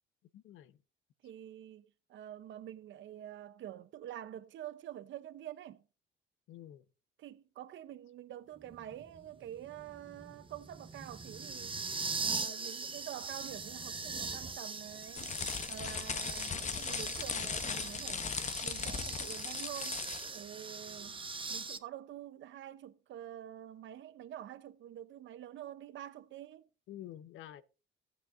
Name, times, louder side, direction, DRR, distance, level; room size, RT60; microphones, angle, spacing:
voice 1, 0.3-0.8 6.5-6.8 26.9-27.6, left 12 dB, 85° left, 0.8 m, -49 dB
voice 2, 1.2-5.8 7.2-11.8 12.2-15.3 15.7-18.3 18.6-20.0 20.3-21.2 21.5-26.7, right 11 dB, 70° right, 0.7 m, -47 dB
sound 1, 8.6-21.8, right 4 dB, 25° right, 1.1 m, -41 dB
sound 2, 15.2-20.4, left 6 dB, 35° left, 0.8 m, -38 dB
15.0 x 8.5 x 2.5 m
cardioid pair, 90°, 20 cm